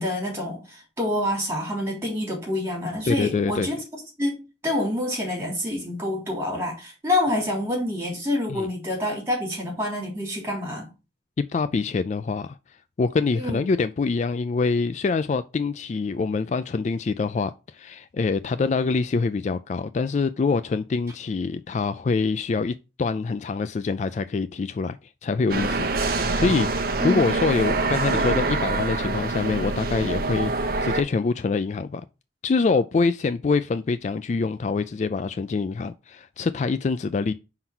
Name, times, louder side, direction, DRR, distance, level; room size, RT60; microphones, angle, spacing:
voice 1, 0.0-3.8 4.2-4.4 4.6-10.9 13.4-13.6 27.0-27.3, left 1 dB, 15° right, 3.4 m, -27 dB
voice 2, 3.0-3.7 8.5-8.7 11.4-12.6 13.0-25.0 25.2-30.5 30.8-32.0 32.4-37.3, left 4 dB, 40° left, 0.3 m, -25 dB
sound 1, 25.5-31.0, right 3 dB, 55° right, 0.9 m, -25 dB
5.5 x 3.9 x 6.0 m
head